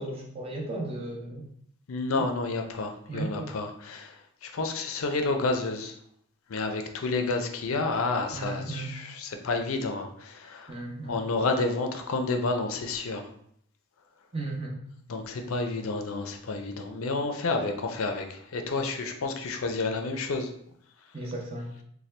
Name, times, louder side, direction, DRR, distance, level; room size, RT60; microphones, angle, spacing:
voice 1, 0.0-1.4 3.1-3.5 8.3-8.9 10.7-11.2 14.3-14.8 21.1-21.7, right 2 dB, 25° right, -1 dB, 0.7 m, -35 dB
voice 2, 1.9-6.0 6.5-10.8 11.1-13.3 15.1-20.5, left 3 dB, 75° left, 5 dB, 0.5 m, -30 dB
4.2 x 2.2 x 3.2 m, 0.69 s
head